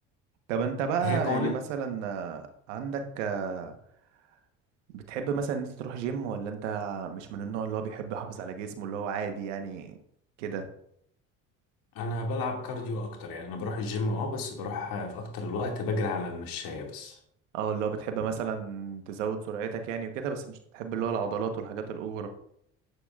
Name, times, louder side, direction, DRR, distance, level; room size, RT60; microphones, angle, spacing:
voice 1, 0.5-3.8 4.9-10.0 10.4-10.7 17.5-22.3, right 6 dB, 85° right, 6 dB, 1.2 m, -32 dB
voice 2, 1.0-1.5 12.0-17.2, left 3 dB, 70° left, 2 dB, 2.3 m, -32 dB
11.0 x 8.6 x 2.4 m, 0.71 s
hypercardioid pair, 65°, 36 cm